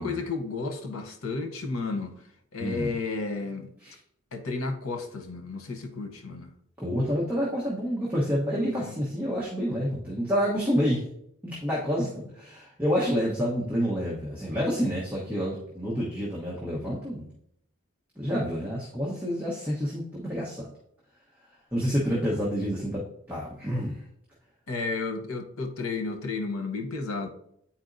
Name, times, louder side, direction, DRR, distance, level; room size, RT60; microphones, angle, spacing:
voice 1, 0.0-2.2 2.5-3.7 4.3-6.5 8.7-9.0 12.0-12.1 24.7-27.3, left 4 dB, 85° left, 0.8 m, -32 dB
voice 2, 2.6-2.9 3.8-4.0 6.8-11.1 11.4-17.3 18.2-20.7 21.7-24.0, equal, 10° right, 1.0 m, -28 dB
9.0 x 4.3 x 2.6 m
head